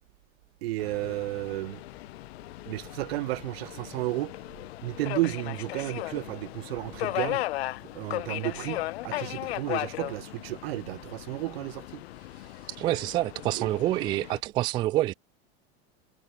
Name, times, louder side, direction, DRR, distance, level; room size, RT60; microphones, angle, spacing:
voice 1, 0.6-1.8 2.7-4.3 4.8-7.4 7.9-12.0 13.6-13.7, right 19 dB, 70° right, 1.0 m, -33 dB
Subway metro underground, 0.8-14.4, left 17 dB, 75° left, 1.7 m, -37 dB
voice 2, 12.8-15.1, right 15 dB, 15° right, 0.4 m, -27 dB
supercardioid pair, 180°, 31 cm